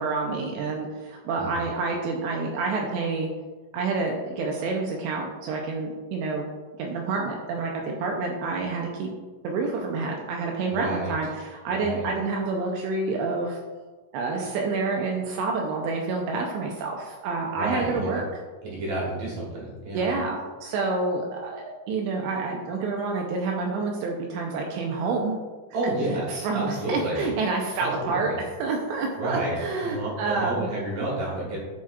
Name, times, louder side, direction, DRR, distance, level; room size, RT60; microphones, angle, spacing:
voice 1, 0.0-3.3 3.7-6.5 6.8-9.1 9.4-13.6 14.1-18.3 19.9-25.4 26.1-30.7, right 3 dB, 85° right, 0 dB, 2.7 m, -28 dB
voice 2, 10.7-11.1 11.7-12.1 17.6-18.1 18.6-20.1 25.7-27.2 27.8-28.4 29.2-29.6 29.8-31.6, right 1 dB, 60° right, -5 dB, 2.6 m, -30 dB
11.0 x 5.8 x 2.4 m, 1.3 s
omnidirectional pair, 5.6 m